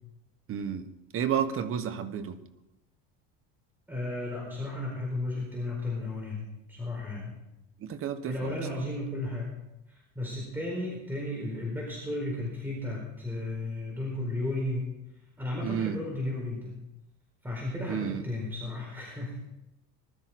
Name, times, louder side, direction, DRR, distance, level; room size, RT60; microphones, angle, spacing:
voice 1, 0.5-0.9 1.1-2.4 7.8-8.6 15.6-16.0 17.9-18.2, right 8 dB, 40° right, 9 dB, 1.3 m, -31 dB
voice 2, 3.9-7.3 8.3-9.6 9.9-14.9 15.4-16.7 17.4-19.4, left 2 dB, 5° right, -3 dB, 4.3 m, -34 dB
20.0 x 12.5 x 4.3 m, 0.93 s
cardioid pair, 135°, 33 cm